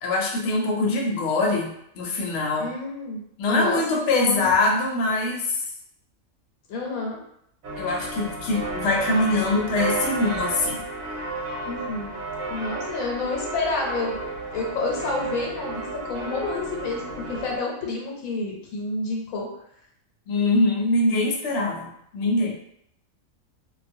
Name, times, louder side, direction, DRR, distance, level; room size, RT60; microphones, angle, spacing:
voice 1, 0.0-2.7 3.4-5.6 7.8-10.8 20.3-22.6, left 2 dB, 65° left, -2 dB, 0.9 m, -23 dB
voice 2, 2.6-4.5 6.7-7.2 11.6-12.1 12.5-14.2 14.5-19.5, left 3 dB, 90° left, -1 dB, 1.1 m, -29 dB
sound 1, 7.6-17.6, right 2 dB, 85° right, 1.1 m, -32 dB
2.3 x 2.2 x 2.6 m, 0.73 s
omnidirectional pair, 1.4 m